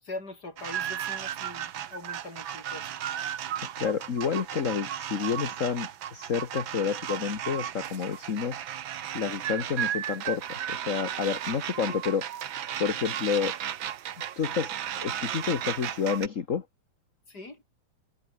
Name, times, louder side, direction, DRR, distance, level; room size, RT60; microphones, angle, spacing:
voice 1, 0.0-2.9 11.9-12.0 17.3-17.6, left 2 dB, 30° left, 7.0 m, -42 dB
sound 1, 0.6-16.3, right 10 dB, 55° right, 1.5 m, -35 dB
voice 2, 3.8-8.6 9.1-12.2 12.8-13.5 14.4-14.7 15.0-16.6, left 6 dB, 45° left, 1.0 m, -29 dB
omnidirectional pair, 3.3 m